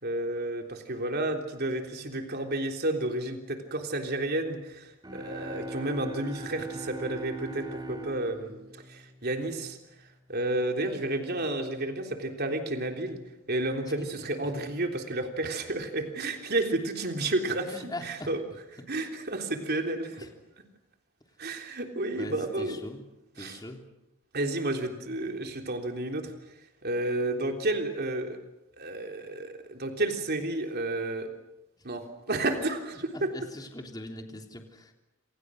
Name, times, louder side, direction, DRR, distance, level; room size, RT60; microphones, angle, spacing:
voice 1, 0.0-8.6 8.9-9.8 10.3-13.2 13.5-18.4 18.9-20.3 21.4-22.9 23.4-23.6 24.3-26.3 26.8-28.4 28.8-31.3 31.8-33.3, right 2 dB, 50° right, 4 dB, 3.5 m, -31 dB
sound 1, 5.0-9.7, right 2 dB, 20° right, 2.3 m, -41 dB
voice 2, 17.7-18.3 18.8-18.9 20.2-20.3 22.2-23.0 23.3-23.8 31.8-31.9 33.1-34.9, left 1 dB, 20° left, 3 dB, 3.2 m, -41 dB
28.5 x 27.5 x 6.5 m, 0.91 s
head